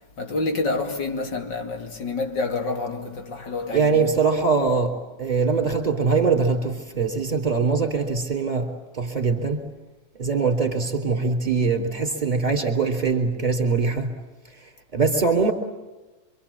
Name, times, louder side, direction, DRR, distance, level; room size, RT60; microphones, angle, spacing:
voice 1, 0.2-4.1, left 3 dB, 70° left, 3.3 m, -28 dB
voice 2, 3.7-9.6 10.2-14.1 14.9-15.5, right 4 dB, 20° right, 3.7 m, -22 dB
27.0 x 25.5 x 8.6 m
omnidirectional pair, 2.0 m